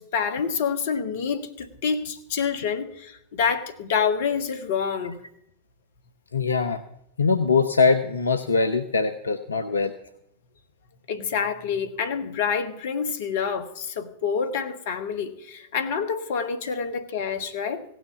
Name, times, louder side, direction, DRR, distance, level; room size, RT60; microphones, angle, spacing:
voice 1, 0.0-5.2 11.1-17.8, left 6 dB, 60° left, 1.3 m, -27 dB
voice 2, 6.3-6.8 7.2-9.9, left 4 dB, 80° left, 0.7 m, -22 dB
16.5 x 6.4 x 8.0 m
figure-of-eight pair, 90°, 0 cm